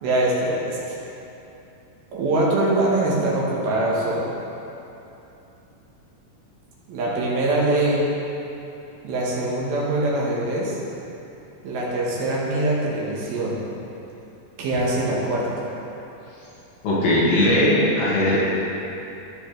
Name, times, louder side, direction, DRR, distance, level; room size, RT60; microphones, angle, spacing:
voice 1, 0.0-1.0 2.1-4.3 6.9-8.0 9.0-10.8 11.6-13.6 14.6-15.7, right 2 dB, 70° right, -5 dB, 3.0 m, -23 dB
voice 2, 16.8-18.4, left 1 dB, 85° left, -7 dB, 4.0 m, -19 dB
15.0 x 6.3 x 3.3 m, 2.9 s
omnidirectional pair, 4.8 m